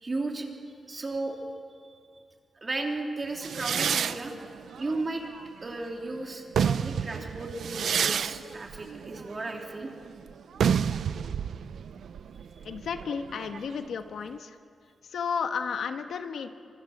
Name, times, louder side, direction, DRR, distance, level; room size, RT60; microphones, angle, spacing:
voice 1, 0.0-0.5 0.9-1.4 2.6-4.5 4.7-5.2 5.6-9.9, right 2 dB, 25° right, 1 dB, 3.4 m, -34 dB
sound 1, 3.4-5.9 6.3-13.8, right 7 dB, 75° right, 0.7 m, -30 dB
voice 2, 12.6-14.6 15.0-16.5, left 6 dB, 80° left, 7 dB, 1.4 m, -33 dB
28.0 x 26.0 x 7.4 m, 2.3 s
wide cardioid pair, 150°, 0 cm